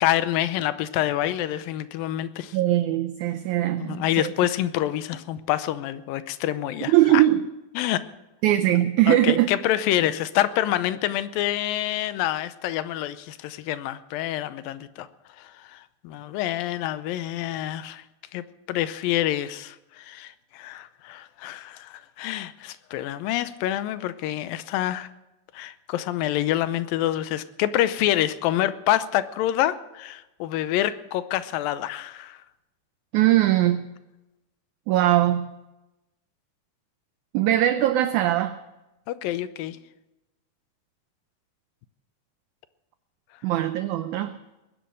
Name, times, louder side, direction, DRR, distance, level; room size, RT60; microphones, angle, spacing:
voice 1, 0.0-2.6 3.8-7.2 7.8-8.0 9.1-15.1 15.4-18.0 18.3-25.1 25.5-32.4 39.1-39.8, left 13 dB, 85° left, 14 dB, 2.5 m, -27 dB
voice 2, 2.5-4.3 6.8-7.5 8.4-9.5 33.1-33.9 34.9-35.5 37.3-38.6 43.4-44.4, right 13 dB, 75° right, 10 dB, 1.9 m, -21 dB
21.0 x 10.0 x 6.5 m, 0.99 s
omnidirectional pair, 4.0 m